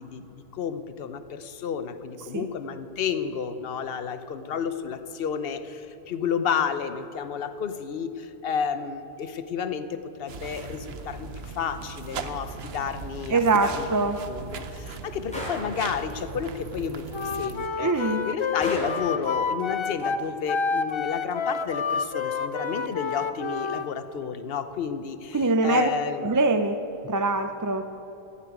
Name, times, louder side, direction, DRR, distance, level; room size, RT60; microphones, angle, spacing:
voice 1, 0.0-13.9 14.3-26.3, left 7 dB, 65° left, 10 dB, 1.0 m, -31 dB
sound 1, 10.3-17.7, right 5 dB, 70° right, 1.1 m, -39 dB
voice 2, 13.3-14.2 17.8-18.2 25.3-25.9 26.2-26.8 27.0-27.8, right 3 dB, 30° right, 8 dB, 0.4 m, -23 dB
Gunshot gunfire, 15.3-15.7 18.6-19.1, equal, 5° left, 3.6 m, -34 dB
Wind instrument woodwind instrument, 17.1-23.9, left 5 dB, 40° left, 0.5 m, -29 dB
12.0 x 12.0 x 9.3 m, 3.0 s
omnidirectional pair, 1.1 m